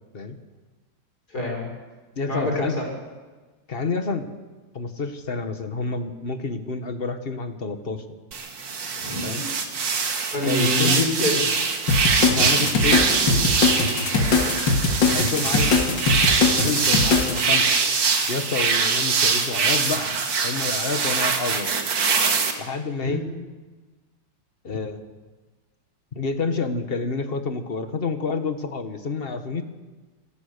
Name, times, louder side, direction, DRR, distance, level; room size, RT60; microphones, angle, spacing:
voice 1, 1.3-1.7 2.3-2.8 9.0-9.5 10.3-11.6 14.1-14.6 23.0-23.2, left 2 dB, 55° left, -1 dB, 6.3 m, -27 dB
voice 2, 2.2-2.7 3.7-4.3 4.7-8.0 9.2-9.4 10.4-11.1 12.3-13.0 15.1-16.1 16.6-17.7 18.3-20.1 20.4-21.7 22.6-23.2 24.6-25.0 26.1-29.6, left 4 dB, 35° left, 8 dB, 1.5 m, -28 dB
sound 1, 8.3-22.5, right 5 dB, 80° right, 2.5 m, -23 dB
sound 2, 11.9-17.4, left 4 dB, 75° left, 2.8 m, -21 dB
26.5 x 14.5 x 6.8 m, 1.3 s
omnidirectional pair, 2.0 m